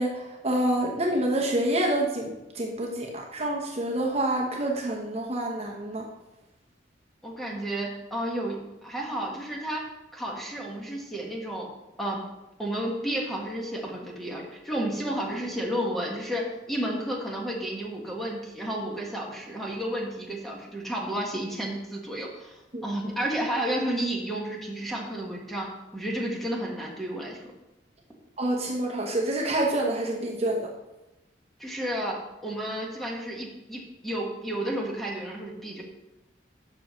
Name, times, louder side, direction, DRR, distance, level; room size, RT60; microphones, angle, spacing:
voice 1, 0.0-6.1 22.7-22.8 28.4-30.7, right 1 dB, 35° right, 0 dB, 1.0 m, -27 dB
voice 2, 7.2-9.8 10.1-11.7 12.0-12.2 12.6-27.4 31.6-35.8, right 1 dB, ahead, -2 dB, 1.5 m, -32 dB
12.5 x 6.2 x 3.1 m, 0.97 s
head